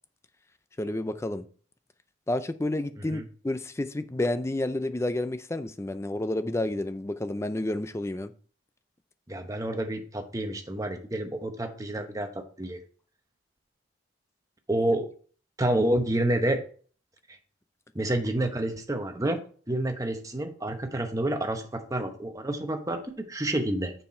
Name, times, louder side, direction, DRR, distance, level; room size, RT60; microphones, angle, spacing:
voice 1, 0.8-1.4 2.3-8.3, left 1 dB, 15° left, 0.4 m, -30 dB
voice 2, 9.3-12.8 14.7-15.1 15.6-16.6 17.9-19.4 19.7-23.9, right 1 dB, 15° right, 0.9 m, -29 dB
6.8 x 5.7 x 4.3 m
head